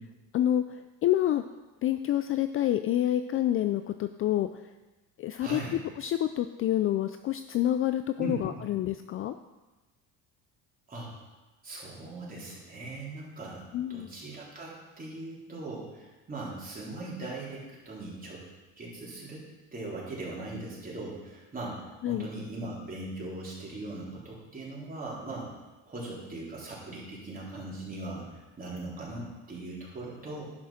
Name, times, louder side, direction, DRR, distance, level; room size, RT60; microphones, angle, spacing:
voice 1, 0.3-1.4 1.8-4.5 5.2-5.6 6.0-9.3 13.7-14.1 22.0-22.3, left 12 dB, 40° left, 10 dB, 0.4 m, -28 dB
voice 2, 5.4-5.8 8.2-8.6 10.9-11.1 11.6-13.6 13.9-18.4 18.8-19.5 19.7-21.8 22.1-25.5 25.9-30.4, right 2 dB, 25° right, -5 dB, 4.0 m, -39 dB
11.0 x 6.1 x 5.8 m, 1.1 s
cardioid pair, 115°, 36 cm